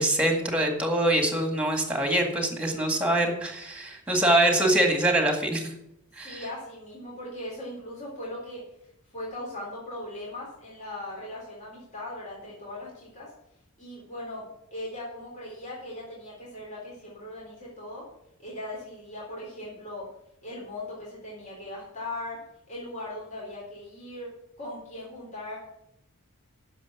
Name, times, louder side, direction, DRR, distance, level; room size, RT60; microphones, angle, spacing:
voice 1, 0.0-5.7 6.2-6.4, right 1 dB, 5° right, 4 dB, 2.0 m, -24 dB
voice 2, 6.1-8.6 9.1-13.3 13.8-14.5 14.7-18.1 18.4-20.1 20.4-24.3 24.6-25.6, left 1 dB, 35° left, -5 dB, 3.7 m, -39 dB
9.8 x 6.7 x 8.3 m, 0.81 s
head